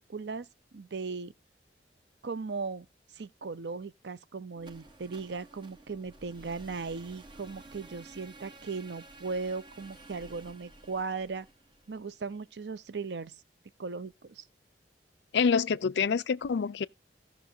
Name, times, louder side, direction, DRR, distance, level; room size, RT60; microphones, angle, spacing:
voice 1, 0.0-1.3 2.2-2.9 3.1-11.5 11.9-13.4 13.8-14.5, right 4 dB, 75° right, 0.6 m, -37 dB
sound 1, 4.6-12.5, right 2 dB, 25° right, 1.2 m, -52 dB
voice 2, 15.3-16.9, left 6 dB, 75° left, 0.4 m, -26 dB
17.0 x 6.1 x 2.7 m
head